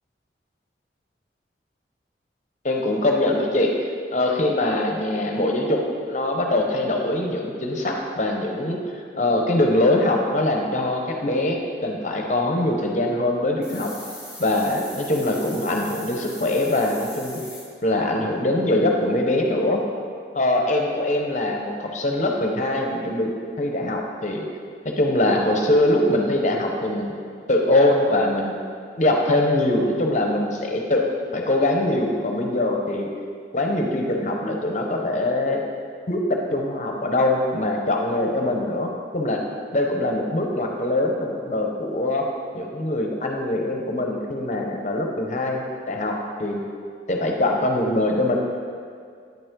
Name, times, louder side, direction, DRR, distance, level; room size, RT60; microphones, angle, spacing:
voice 1, 2.6-3.7 4.1-5.8 6.1-8.8 9.2-11.6 11.8-13.9 14.4-17.4 17.8-19.8 20.3-24.4 24.8-27.1 27.5-28.5 29.0-31.0 31.3-33.1 33.5-35.6 36.1-39.4 39.7-42.2 42.5-46.6 47.1-48.4, left 1 dB, 40° left, 1 dB, 0.8 m, -22 dB
sound 1, 13.6-17.7, left 1 dB, 5° right, 1.1 m, -40 dB
9.0 x 5.4 x 3.7 m, 2.2 s
head